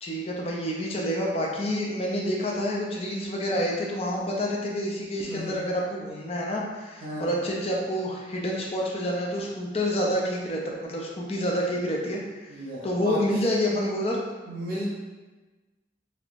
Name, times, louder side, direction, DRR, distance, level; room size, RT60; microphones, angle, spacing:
voice 1, 0.0-12.5 12.8-14.2, equal, 35° left, -2 dB, 0.4 m, -28 dB
voice 2, 12.5-13.4 14.4-14.9, equal, 50° right, -6 dB, 1.0 m, -34 dB
3.4 x 3.4 x 2.5 m, 1.2 s
head